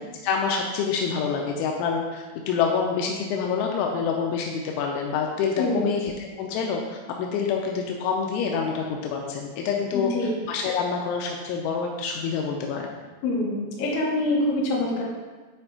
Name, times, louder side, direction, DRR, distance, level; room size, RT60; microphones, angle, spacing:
voice 1, 0.2-6.8 7.2-12.9, left 6 dB, 85° left, 1 dB, 3.0 m, -27 dB
voice 2, 5.6-5.9 9.9-10.3 13.2-15.0, left 2 dB, 70° left, -4 dB, 3.0 m, -25 dB
9.8 x 4.3 x 2.8 m, 1.3 s
omnidirectional pair, 5.4 m